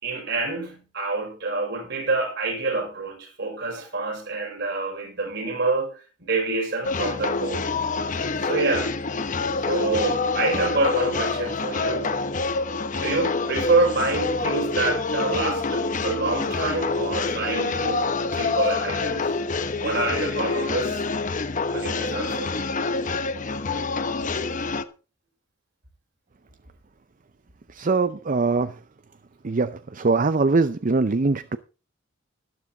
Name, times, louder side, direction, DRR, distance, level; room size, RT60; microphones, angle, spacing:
voice 1, 0.0-5.9 6.2-7.7 8.4-9.0 9.7-12.2 13.0-19.3 19.8-21.0 21.7-22.6, right 3 dB, 60° right, 5.3 m, -27 dB
sound 1, 6.8-24.8, left 3 dB, 40° left, 0.9 m, -26 dB
voice 2, 27.7-28.7 29.4-31.6, right 3 dB, 40° right, 0.6 m, -22 dB
13.0 x 12.0 x 3.9 m
head